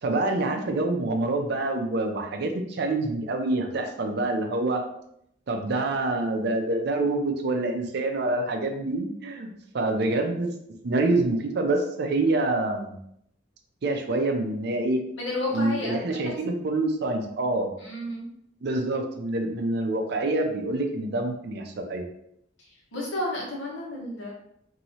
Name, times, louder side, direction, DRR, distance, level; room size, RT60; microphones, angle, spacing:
voice 1, 0.0-4.8 5.5-10.5 10.8-13.0 13.8-15.0 15.5-17.7 18.6-22.1, right 2 dB, 55° right, 4 dB, 0.5 m, -26 dB
voice 2, 15.2-16.3 17.8-18.3 22.7-24.3, left 1 dB, 80° left, -3 dB, 1.0 m, -32 dB
3.0 x 2.7 x 2.7 m, 0.74 s
head